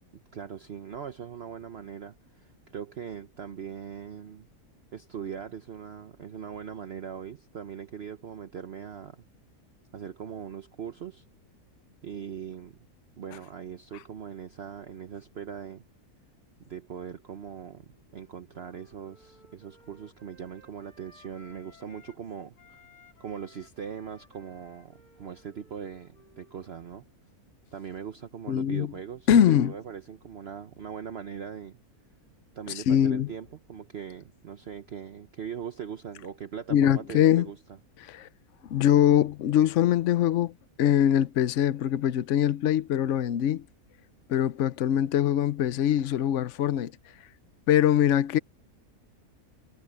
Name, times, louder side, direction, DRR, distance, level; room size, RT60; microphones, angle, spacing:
voice 1, 0.3-4.5 4.9-9.2 9.9-11.2 12.0-12.8 13.2-15.8 16.6-17.8 18.1-22.8 23.2-27.0 27.7-31.8 32.5-37.6, right 7 dB, 50° right, 1.0 m, -40 dB
Wind instrument woodwind instrument, 17.9-22.3 22.6-27.1, left 1 dB, 90° left, 5.4 m, -59 dB
voice 2, 28.5-28.9 29.3-29.7 32.9-33.3 36.7-37.5 38.1-38.3 38.7-40.5 40.8-43.6 44.3-46.9 47.7-48.4, left 10 dB, 60° left, 1.0 m, -23 dB
omnidirectional pair, 1.6 m